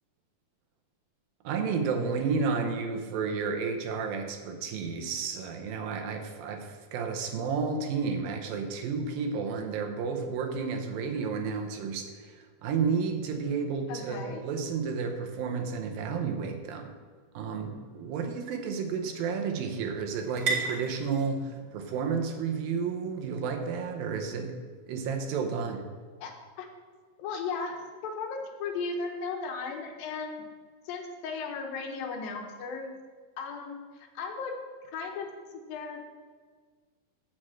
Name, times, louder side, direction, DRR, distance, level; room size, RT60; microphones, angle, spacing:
voice 1, 1.4-16.9 17.3-25.9, right 5 dB, 80° right, 4 dB, 2.6 m, -31 dB
voice 2, 13.9-14.4 26.2-26.3 26.6-26.7 27.2-27.8 28.0-30.4 30.9-32.9 33.4-34.5 34.8-35.3 35.5-36.0, left 4 dB, 80° left, 3 dB, 2.7 m, -36 dB
sound 1, 17.0-24.7, right 4 dB, 45° right, 1.5 m, -40 dB
7.5 x 6.5 x 7.5 m, 1.5 s
omnidirectional pair, 4.2 m